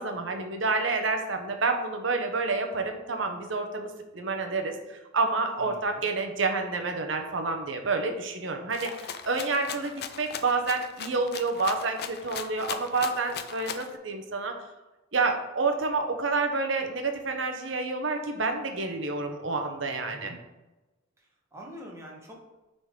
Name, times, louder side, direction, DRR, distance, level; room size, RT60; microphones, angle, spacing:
voice 1, 0.0-4.7 5.1-14.5 15.1-20.4, right 3 dB, 65° right, 5 dB, 0.9 m, -29 dB
voice 2, 5.5-6.1 20.1-20.4 21.2-22.4, equal, 15° right, -2 dB, 1.3 m, -46 dB
Rattle (instrument), 8.7-13.9, left 7 dB, 50° left, 0.5 m, -38 dB
9.0 x 4.0 x 3.7 m, 1.1 s
head